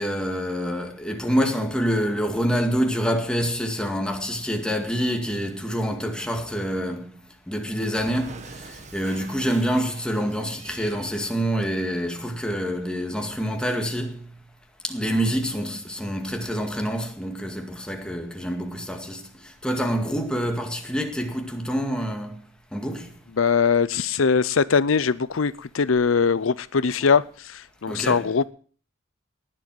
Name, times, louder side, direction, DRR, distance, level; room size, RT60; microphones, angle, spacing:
voice 1, 0.0-7.2 7.5-14.4 14.8-22.4 22.7-23.1 27.9-28.3, equal, 5° left, 2.0 m, -27 dB
Cat, 7.9-11.2, right 3 dB, 35° right, 1.7 m, -44 dB
voice 2, 23.4-28.4, left 5 dB, 90° left, 0.6 m, -21 dB
19.0 x 7.6 x 7.7 m
head